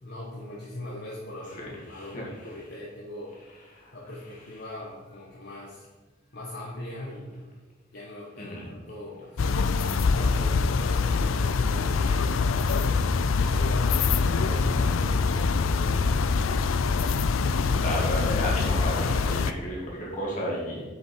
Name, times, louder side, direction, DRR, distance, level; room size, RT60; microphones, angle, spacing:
voice 1, 0.0-3.4 3.9-5.8 6.3-7.5 7.9-9.6 10.1-16.4, left 1 dB, 55° left, -5 dB, 1.3 m, -40 dB
voice 2, 1.6-2.2 3.8-3.9 8.4-8.7 11.3-11.5 17.7-20.8, equal, 40° left, -4 dB, 2.6 m, -33 dB
sound 1, 9.4-19.5, left 4 dB, 80° left, 0.4 m, -24 dB
7.6 x 6.9 x 4.6 m, 1.2 s
head